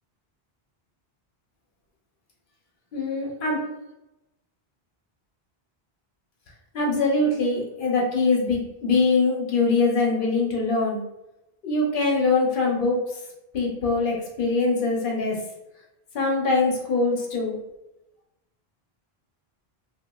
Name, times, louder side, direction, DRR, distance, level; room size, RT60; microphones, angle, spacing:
voice 1, 2.9-3.6 6.7-11.0 11.6-13.0 13.5-15.4 16.1-17.6, left 3 dB, 60° left, -1 dB, 0.7 m, -23 dB
2.8 x 2.2 x 2.2 m, 0.94 s
omnidirectional pair, 1.0 m